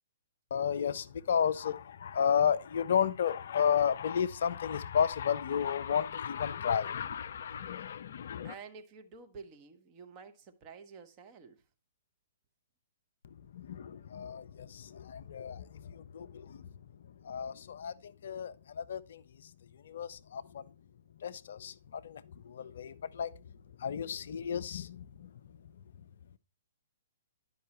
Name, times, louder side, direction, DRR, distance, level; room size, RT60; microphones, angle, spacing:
voice 1, 0.5-8.5 13.5-16.7 17.2-19.2 19.8-20.6 21.2-23.3 23.8-25.3, left 8 dB, 55° left, 0.3 m, -33 dB
voice 2, 8.4-11.6, right 5 dB, 30° right, 0.9 m, -50 dB
10.5 x 5.4 x 2.9 m
figure-of-eight pair, 120°, 0 cm